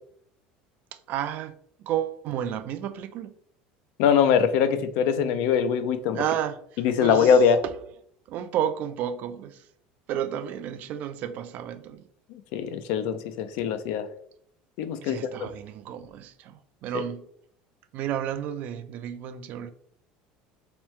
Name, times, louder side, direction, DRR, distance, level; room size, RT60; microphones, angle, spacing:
voice 1, 0.9-3.3 6.1-7.7 8.3-9.7 10.1-12.0 15.0-17.3 17.9-19.7, right 10 dB, 55° right, 0.4 m, -32 dB
voice 2, 4.0-6.2 6.8-7.6 12.3-14.1 14.8-15.2 16.9-17.0, left 7 dB, 75° left, 0.4 m, -22 dB
3.4 x 3.0 x 3.1 m
cardioid pair, 130°, 3 cm